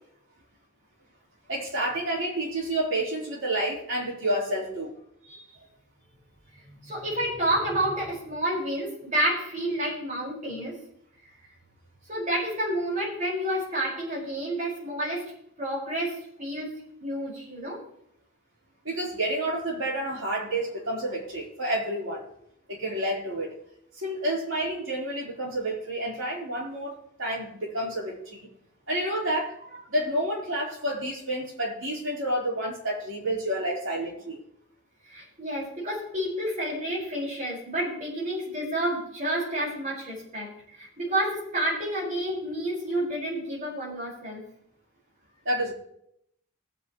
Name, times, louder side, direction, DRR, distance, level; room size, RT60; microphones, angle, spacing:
voice 1, 1.5-4.9 18.8-22.3 22.7-23.5 24.0-28.5 28.9-29.5 29.9-34.4 45.5-45.7, right 1 dB, 65° right, -3 dB, 3.8 m, -29 dB
voice 2, 6.5-10.8 11.2-11.3 12.1-15.3 15.6-16.7 17.0-17.8 35.1-44.4, right 1 dB, 35° right, -4 dB, 5.2 m, -30 dB
20.5 x 8.1 x 3.1 m, 0.73 s
head